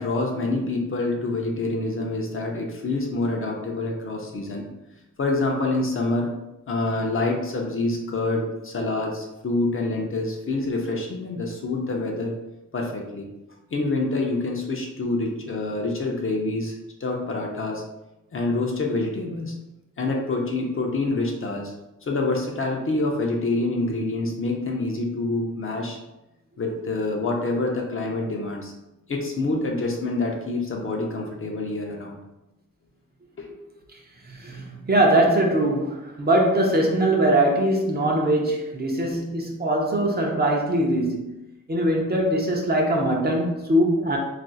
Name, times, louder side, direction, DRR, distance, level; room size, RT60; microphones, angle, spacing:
voice 1, 0.0-4.7 5.2-6.3 6.7-12.3 12.7-13.3 13.7-16.7 17.0-17.8 18.3-19.6 20.0-21.7 22.0-26.0 26.6-28.7 29.1-32.2 33.4-33.5, left 2 dB, 40° left, 0 dB, 0.5 m, -26 dB
voice 2, 34.2-41.4 41.7-44.2, right 1 dB, 30° right, -1 dB, 0.5 m, -22 dB
2.4 x 2.3 x 3.8 m, 0.96 s
wide cardioid pair, 140°, 33 cm